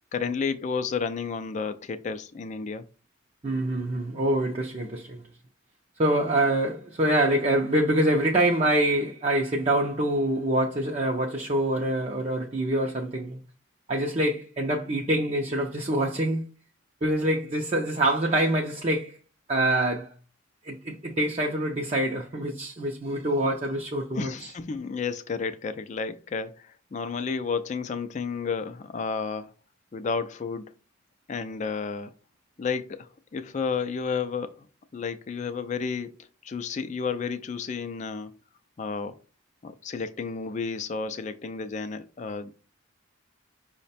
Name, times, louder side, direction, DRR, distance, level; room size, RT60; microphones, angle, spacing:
voice 1, 0.1-2.9 24.1-29.5 29.9-30.7 31.3-32.1 32.6-34.7 34.9-38.3 38.8-39.2 39.6-42.5, left 5 dB, 35° left, 0.3 m, -31 dB
voice 2, 3.4-5.2 6.0-13.4 13.9-16.4 17.0-19.2 19.5-20.1 20.6-24.5, right 1 dB, 30° right, 0.5 m, -25 dB
5.7 x 2.1 x 4.1 m
head